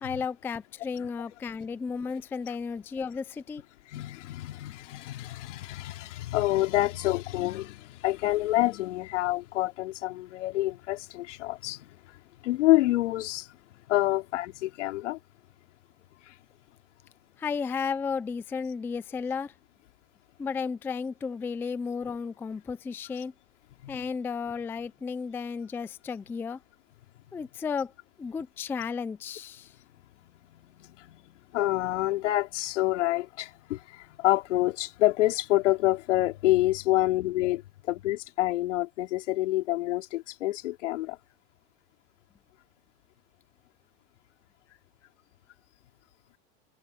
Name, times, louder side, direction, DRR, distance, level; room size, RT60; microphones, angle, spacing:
voice 1, 0.0-3.6 17.4-19.5 20.4-23.3 23.9-26.6 27.3-27.9 28.2-29.7, left 5 dB, 5° left, 0.4 m, -33 dB
voice 2, 3.9-11.9 12.4-13.5 13.9-15.2 23.8-24.0 30.5-31.2 31.5-37.6 37.9-41.2, left 16 dB, 80° left, 3.1 m, -27 dB
open air
supercardioid pair, 145°, 36 cm